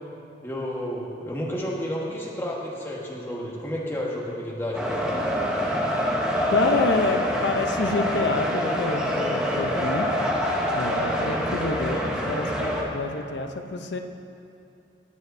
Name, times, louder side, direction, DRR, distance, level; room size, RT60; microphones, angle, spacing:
voice 1, 0.4-5.1, equal, 15° left, -4 dB, 1.3 m, -31 dB
sound 1, 4.7-12.8, equal, 5° right, 0.8 m, -25 dB
voice 2, 6.5-10.1 10.7-14.0, left 3 dB, 75° left, 6 dB, 0.6 m, -28 dB
18.5 x 7.4 x 2.6 m, 2.7 s
head